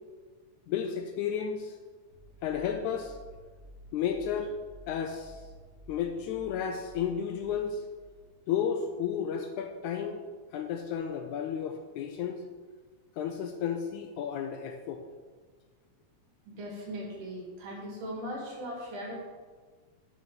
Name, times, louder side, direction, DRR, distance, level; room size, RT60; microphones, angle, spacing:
voice 1, 0.7-1.8 2.4-3.2 3.9-4.5 4.9-5.4 5.9-7.8 8.5-10.2 10.5-12.4 13.2-15.0, left 7 dB, 80° left, 5 dB, 1.8 m, -32 dB
sound 1, 2.1-9.3, right 1 dB, 55° right, 2.9 m, -53 dB
voice 2, 16.4-19.2, equal, 70° right, -4 dB, 4.2 m, -39 dB
7.5 x 6.1 x 7.5 m, 1.5 s
omnidirectional pair, 3.8 m